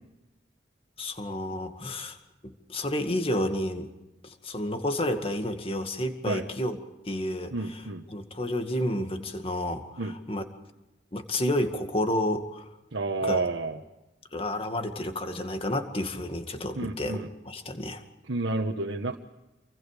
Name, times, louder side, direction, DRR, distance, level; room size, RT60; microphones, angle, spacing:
voice 1, 1.0-2.2 2.4-3.9 4.2-6.8 7.1-7.8 8.1-10.4 11.1-12.7 13.2-13.4 14.3-18.0, left 1 dB, 30° left, 6 dB, 2.1 m, -30 dB
voice 2, 7.5-8.0 10.0-10.1 12.9-13.8 16.7-17.3 18.2-19.2, right 2 dB, 90° right, 2 dB, 1.3 m, -30 dB
28.0 x 23.5 x 5.1 m, 1.0 s
head